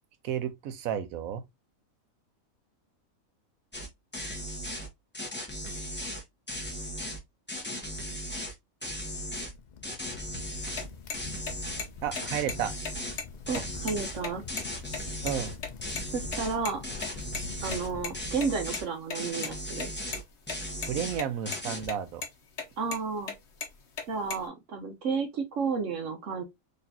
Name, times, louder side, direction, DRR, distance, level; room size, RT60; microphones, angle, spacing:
voice 1, 0.2-1.4 12.0-12.7 15.2-15.5 20.9-22.2, right 9 dB, 90° right, 1.1 m, -32 dB
sound 1, 3.7-3.9 4.1-4.9 5.1-7.2 7.5-8.5 8.8-9.5 9.8-10.9 11.1-13.2 13.5-14.2 14.5-15.6 15.8-16.6 16.8-17.9 18.1-18.8 19.1-20.2 20.5-21.2 21.5-21.9, equal, 10° left, 0.8 m, -37 dB
Crackle, 9.1-18.3, left 5 dB, 90° left, 0.4 m, -44 dB
sound 2, 10.6-15.7 16.0-16.1 16.3-16.4 16.7-16.8 17.0-17.1 17.3-17.4 17.7-18.8 19.1-19.5 19.8-20.6 20.8-21.3 21.5-22.0 22.2-22.3 22.6-23.0 23.3-24.5, left 5 dB, 55° left, 1.3 m, -36 dB
voice 2, 13.5-14.4 16.1-16.8 17.6-19.9 22.8-23.3 24.1-26.4, right 5 dB, 65° right, 1.1 m, -32 dB
4.1 x 3.2 x 2.7 m
omnidirectional pair, 1.4 m